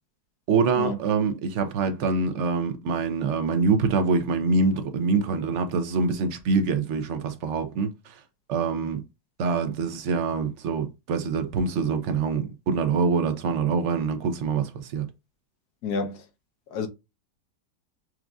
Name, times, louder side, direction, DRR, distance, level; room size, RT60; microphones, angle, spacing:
voice 1, 0.5-8.2 8.5-9.0 9.4-15.1, right 4 dB, 65° right, 0.7 m, -25 dB
voice 2, 15.8-16.2 16.7-16.9, left 4 dB, 70° left, 1.2 m, -28 dB
6.0 x 2.4 x 2.3 m
omnidirectional pair, 1.8 m